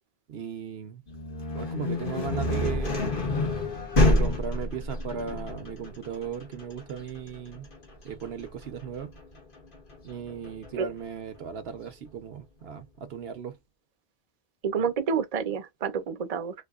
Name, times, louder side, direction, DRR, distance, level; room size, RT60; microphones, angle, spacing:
voice 1, 0.3-1.0 1.5-3.1 3.9-7.7 8.0-9.1 10.0-13.6, right 7 dB, 70° right, 0.9 m, -36 dB
sound 1, 1.1-10.9, left 1 dB, 55° left, 1.3 m, -28 dB
voice 2, 14.6-16.5, right 6 dB, 45° right, 0.6 m, -28 dB
3.3 x 3.0 x 2.4 m
omnidirectional pair, 1.1 m